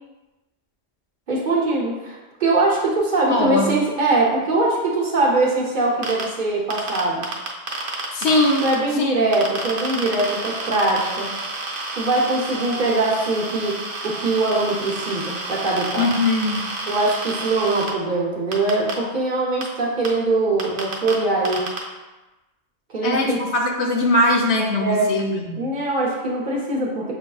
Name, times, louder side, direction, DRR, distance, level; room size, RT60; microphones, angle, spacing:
voice 1, 1.3-7.3 8.6-11.3 11.9-16.1 16.8-21.7 22.9-23.4 24.8-25.1 25.6-27.1, right 2 dB, 50° right, -4 dB, 0.8 m, -22 dB
voice 2, 3.3-3.7 8.1-8.7 9.0-9.1 16.0-16.6 23.0-25.7, left 2 dB, 75° left, 0 dB, 0.9 m, -20 dB
sound 1, 6.0-6.2 6.7-8.7 9.3-17.9 18.5-18.9 19.6-19.7 20.0-20.1 20.6-21.1 21.5-21.8, right 3 dB, 70° right, 0.9 m, -30 dB
6.5 x 2.6 x 2.3 m, 1.1 s
omnidirectional pair, 1.2 m